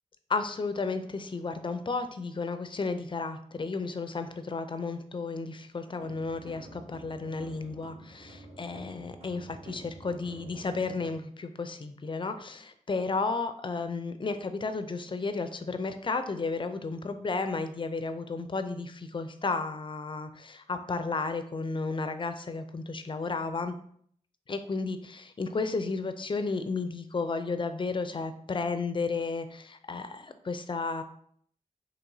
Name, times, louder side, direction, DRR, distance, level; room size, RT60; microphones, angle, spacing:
voice 1, 0.3-23.7 24.5-31.0, left 4 dB, 35° left, 9 dB, 0.4 m, -33 dB
sound 1, 6.0-11.2, right 1 dB, 45° right, 1.2 m, -49 dB
4.7 x 2.9 x 2.6 m, 0.63 s
wide cardioid pair, 90°, 14 cm